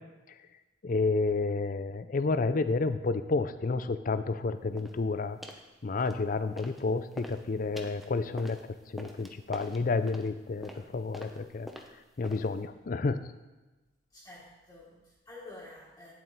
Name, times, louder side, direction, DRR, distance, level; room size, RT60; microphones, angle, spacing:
voice 1, 0.8-5.4 5.8-8.6 8.9-11.7 12.2-13.3, left 3 dB, 45° left, 11 dB, 0.5 m, -30 dB
sound 1, 4.8-5.0 5.4-5.7 6.0-6.8 7.1-12.7, equal, ahead, 0.7 m, -46 dB
voice 2, 14.1-16.1, left 2 dB, 15° left, -8 dB, 1.5 m, -49 dB
9.7 x 7.5 x 4.0 m, 1.1 s
head